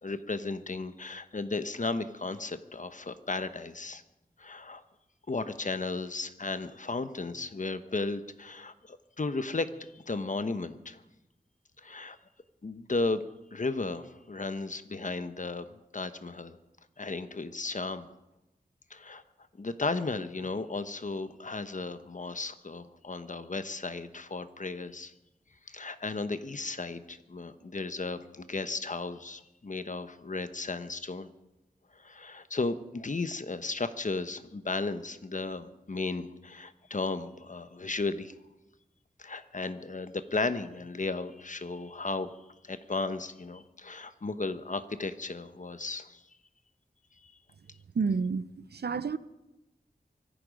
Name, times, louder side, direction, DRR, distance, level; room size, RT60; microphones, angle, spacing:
voice 1, 0.0-4.0 4.4-4.8 5.3-11.0 11.8-12.2 12.6-13.2 13.5-15.7 15.9-16.6 17.0-18.1 18.9-19.2 19.6-25.1 25.7-31.3 32.0-38.3 39.2-42.3 42.6-46.2 47.2-47.3, left 3 dB, 50° left, 1.0 m, -35 dB
voice 2, 47.9-49.2, right 5 dB, 80° right, 0.6 m, -30 dB
24.0 x 11.5 x 5.3 m
wide cardioid pair, 80°, 17 cm